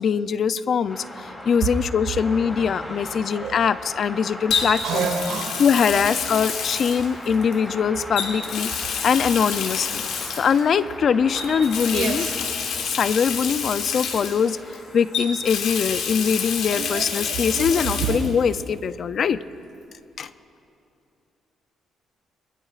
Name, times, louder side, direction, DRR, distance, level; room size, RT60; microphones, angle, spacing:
voice 1, 0.0-5.1 5.6-8.7 9.0-10.0 10.4-12.3 12.8-19.4 20.2-20.3, left 6 dB, 55° left, 14 dB, 0.5 m, -22 dB
sound 1, 0.9-18.2, left 1 dB, 20° left, 3.2 m, -39 dB
Water tap faucet, 1.5-1.8 4.5-7.6 8.1-10.6 11.3-14.8 15.1-18.3 18.6-18.7 20.3-20.4, left 6 dB, 85° left, 1.8 m, -28 dB
voice 2, 4.8-5.7 5.9-6.1 11.9-12.3 16.7-18.2, right 6 dB, 85° right, 5 dB, 1.7 m, -28 dB
23.5 x 21.5 x 2.5 m, 2.6 s
cardioid pair, 90°, 0 cm